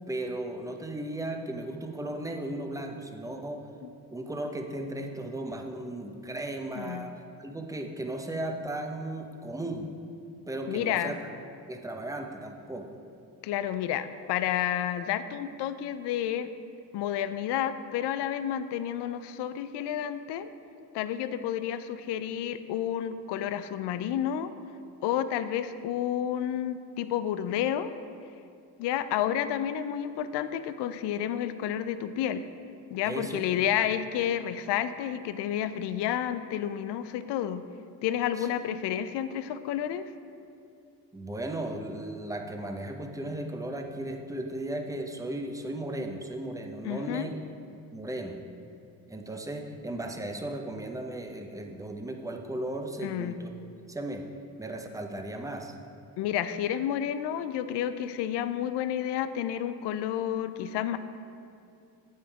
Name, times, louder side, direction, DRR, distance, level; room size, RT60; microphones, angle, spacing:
voice 1, 0.1-3.6 4.1-9.9 10.5-11.2 11.7-12.9 33.0-33.4 38.4-38.5 41.1-47.3 47.9-48.4 49.1-53.5 53.9-54.2 54.6-55.8, right 1 dB, 5° right, 4 dB, 0.9 m, -36 dB
voice 2, 10.7-11.1 13.4-16.5 16.9-20.5 20.9-24.5 25.0-27.9 28.8-32.4 32.9-37.6 38.0-40.1 46.8-47.3 53.0-53.4 56.2-61.0, left 10 dB, 65° left, 12 dB, 0.6 m, -30 dB
8.4 x 5.6 x 4.7 m, 2.6 s
hypercardioid pair, 50°, 45 cm